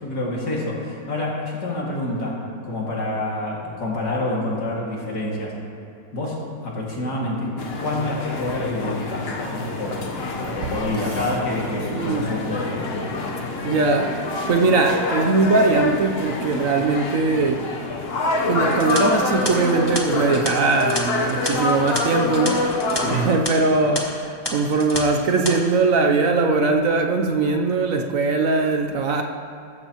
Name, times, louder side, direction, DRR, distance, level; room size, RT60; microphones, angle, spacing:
voice 1, 0.0-5.6 6.1-7.6 7.8-10.0 10.4-13.2 22.9-23.3, left 1 dB, 75° left, -3 dB, 2.7 m, -27 dB
sound 1, 7.6-23.4, left 2 dB, 45° left, 1.0 m, -27 dB
voice 2, 11.9-12.3 13.6-14.2 14.5-17.6 18.4-22.8 23.1-29.2, right 3 dB, 60° right, 4 dB, 1.0 m, -20 dB
sound 2, 18.7-23.0 23.3-23.5 23.9-24.0 24.4-25.0 25.3-25.5, left 2 dB, 15° left, 1.3 m, -30 dB
14.5 x 14.0 x 3.0 m, 2.7 s
omnidirectional pair, 1.8 m